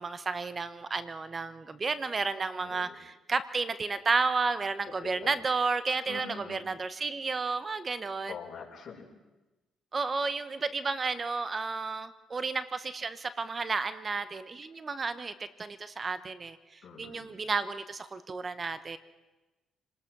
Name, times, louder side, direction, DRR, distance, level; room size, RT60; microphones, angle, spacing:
voice 1, 0.0-8.4 9.9-15.3 15.6-19.0, right 4 dB, 35° right, 13 dB, 1.0 m, -32 dB
voice 2, 2.6-3.0 5.2-5.3 6.1-6.6 8.3-9.1 16.8-17.3, left 7 dB, 55° left, -1 dB, 5.8 m, -44 dB
29.5 x 19.5 x 6.1 m, 1.1 s
cardioid pair, 90°, 0 cm